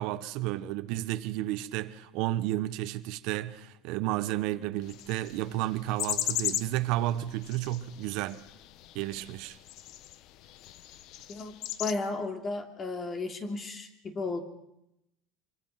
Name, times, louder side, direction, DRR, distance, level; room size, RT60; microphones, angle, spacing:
voice 1, 0.0-8.4 8.9-9.6, right 15 dB, 65° right, 1.3 m, -32 dB
sound 1, 4.8-11.9, left 13 dB, 55° left, 1.1 m, -38 dB
voice 2, 11.8-14.4, left 3 dB, 25° left, 3.0 m, -34 dB
27.0 x 24.0 x 6.0 m
cardioid pair, 165°, 0 cm